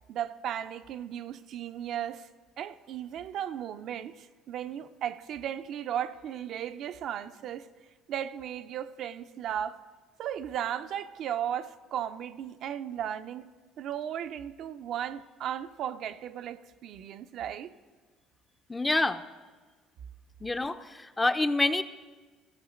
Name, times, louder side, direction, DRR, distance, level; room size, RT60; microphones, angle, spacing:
voice 1, 0.1-2.3 2.6-7.7 8.1-9.8 10.2-13.4 13.8-17.7, right 10 dB, 60° right, 0.4 m, -35 dB
voice 2, 18.7-19.2 20.4-21.8, left 2 dB, 15° left, 0.5 m, -27 dB
14.5 x 6.3 x 5.0 m
supercardioid pair, 95°, 0 cm